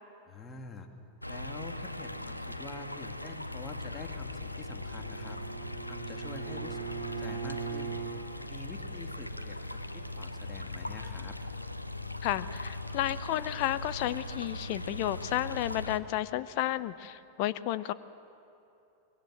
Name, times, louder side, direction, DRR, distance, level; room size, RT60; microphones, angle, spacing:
voice 1, 0.3-0.9 1.3-5.4 5.9-8.0 8.5-11.4, left 3 dB, 20° left, 4 dB, 2.4 m, -46 dB
sound 1, 1.2-16.0, left 1 dB, 85° left, 1.0 m, -40 dB
Bowed string instrument, 4.4-8.2, right 6 dB, 75° right, 6.6 m, -40 dB
voice 2, 12.2-17.9, left 14 dB, 45° left, 16 dB, 0.7 m, -32 dB
24.0 x 22.5 x 7.7 m, 2.8 s
figure-of-eight pair, 90°, 0 cm